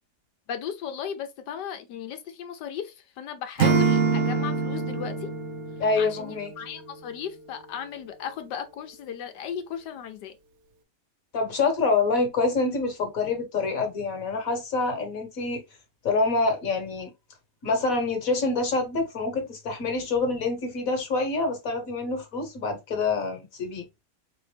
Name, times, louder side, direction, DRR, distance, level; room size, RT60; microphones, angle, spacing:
voice 1, 0.5-5.3 6.0-10.4, left 8 dB, 75° left, 1.3 m, -36 dB
Acoustic guitar / Strum, 3.6-6.7, right 5 dB, 80° right, 0.6 m, -25 dB
voice 2, 5.8-6.5 11.3-15.6 16.0-17.1 17.6-23.9, left 3 dB, 55° left, 1.5 m, -26 dB
3.7 x 3.4 x 3.2 m
omnidirectional pair, 1.9 m